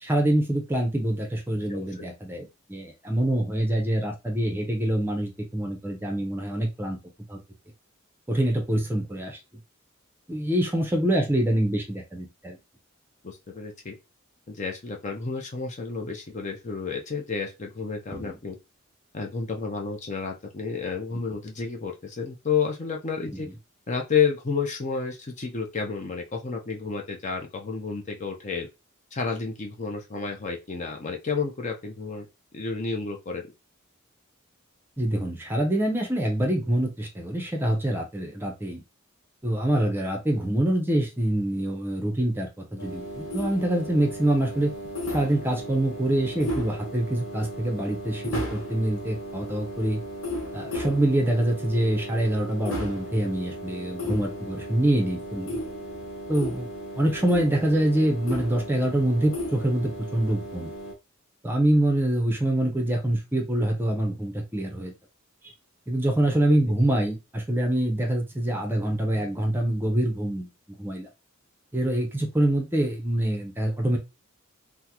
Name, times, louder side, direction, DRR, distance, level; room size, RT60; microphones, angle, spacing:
voice 1, 0.0-7.0 7.3-7.4 8.3-9.4 10.3-12.6 18.1-18.4 35.0-38.8 39.4-44.7 45.1-50.0 50.5-55.6 56.3-56.7 57.0-60.7 61.4-64.9 65.4-65.5 65.9-70.5 70.8-71.1 71.7-74.0, right 1 dB, 10° right, 2 dB, 0.6 m, -25 dB
voice 2, 1.7-2.1 13.2-13.9 14.5-18.5 19.1-23.5 23.9-28.7 29.1-32.3 32.5-33.4, left 5 dB, 35° left, 2 dB, 0.5 m, -30 dB
sound 1, 42.8-60.9, equal, 70° left, 0.7 m, -35 dB
3.5 x 2.1 x 2.9 m, 0.26 s
head